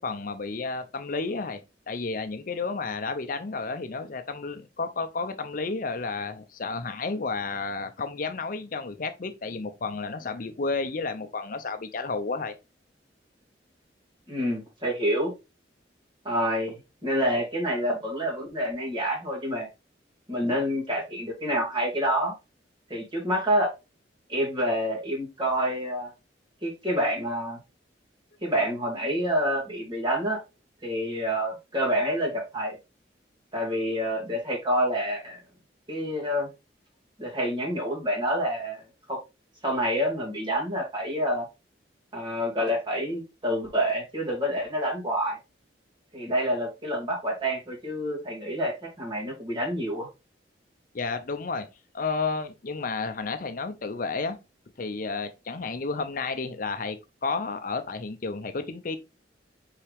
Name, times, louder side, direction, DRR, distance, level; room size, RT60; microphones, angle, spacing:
voice 1, 0.0-1.6 1.9-12.5 50.9-51.7 51.9-54.4 54.8-57.0 57.2-59.0, left 4 dB, 50° left, 0.6 m, -31 dB
voice 2, 14.3-15.3 16.2-19.7 20.3-22.3 22.9-23.7 24.3-26.1 26.6-27.6 28.4-30.4 30.8-32.8 33.5-35.4 35.9-36.5 37.2-38.8 39.1-39.2 39.6-41.5 42.1-45.4 46.1-50.1, equal, 25° right, 2.5 m, -27 dB
5.7 x 4.8 x 3.4 m
head